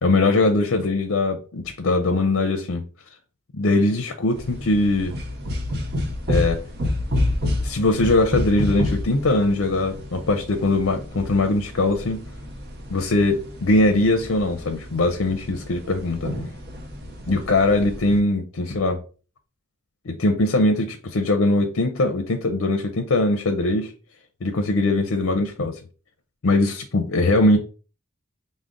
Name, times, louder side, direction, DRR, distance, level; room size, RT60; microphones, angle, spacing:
voice 1, 0.0-2.8 3.5-5.2 6.3-6.6 7.6-12.2 12.9-16.3 17.2-19.0 20.0-23.9 24.4-25.8 26.4-27.6, left 2 dB, 75° left, 0.5 m, -21 dB
sound 1, 4.4-18.2, left 1 dB, 50° right, 0.6 m, -29 dB
4.8 x 2.1 x 3.7 m
head